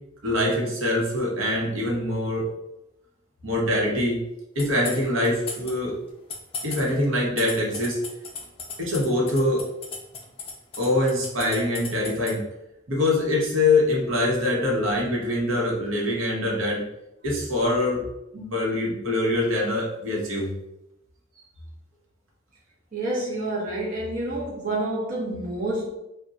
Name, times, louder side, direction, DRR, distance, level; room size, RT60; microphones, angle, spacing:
voice 1, 0.2-2.4 3.4-4.2 4.5-6.0 6.6-8.0 8.8-9.7 10.8-12.4 12.9-16.8 17.2-18.0 18.3-20.5, left 1 dB, 85° right, -2 dB, 0.9 m, -24 dB
sound 1, 4.6-5.7 6.1-12.3, left 5 dB, 30° left, 0.4 m, -35 dB
voice 2, 22.9-25.9, right 1 dB, 40° right, -6 dB, 0.7 m, -28 dB
2.4 x 2.2 x 3.9 m, 0.89 s
head